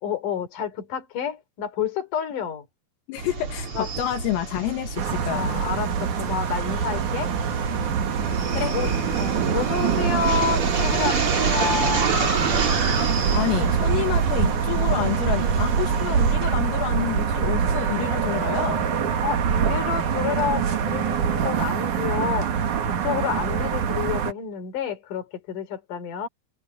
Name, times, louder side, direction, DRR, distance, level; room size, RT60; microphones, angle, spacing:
voice 1, 0.0-2.7 3.7-3.9 5.3-7.3 8.7-8.9 9.2-12.1 19.2-22.6 22.8-26.3, left 7 dB, 40° left, 4.7 m, -29 dB
voice 2, 3.1-5.6 8.5-8.8 13.3-18.9, left 12 dB, 80° left, 4.7 m, -29 dB
sound 1, 3.2-16.3, right 5 dB, 35° right, 2.8 m, -28 dB
sound 2, 5.0-24.3, right 7 dB, 55° right, 2.4 m, -24 dB
omnidirectional pair, 6.0 m